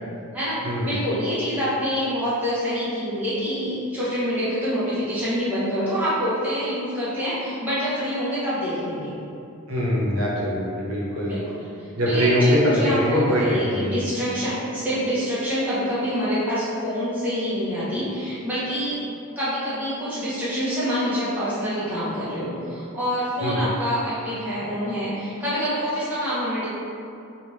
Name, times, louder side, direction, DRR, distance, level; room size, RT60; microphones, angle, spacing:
voice 1, 0.3-9.1 11.2-11.7 12.1-19.0 19.4-26.7, equal, 10° right, -12 dB, 0.9 m, -26 dB
voice 2, 9.7-11.3 12.0-14.0 23.4-23.6, equal, 80° right, -5 dB, 0.8 m, -22 dB
3.3 x 2.6 x 3.2 m, 2.6 s
head